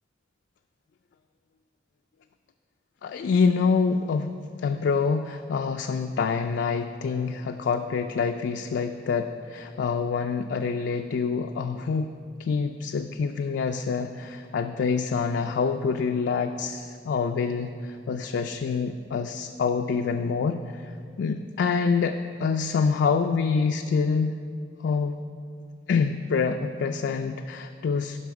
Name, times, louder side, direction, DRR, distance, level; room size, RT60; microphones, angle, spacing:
voice 1, 3.0-4.3 4.6-12.1 12.4-24.5 24.8-25.2 25.9-28.2, left 5 dB, 65° left, 5 dB, 0.3 m, -26 dB
11.0 x 5.6 x 4.6 m, 2.2 s
head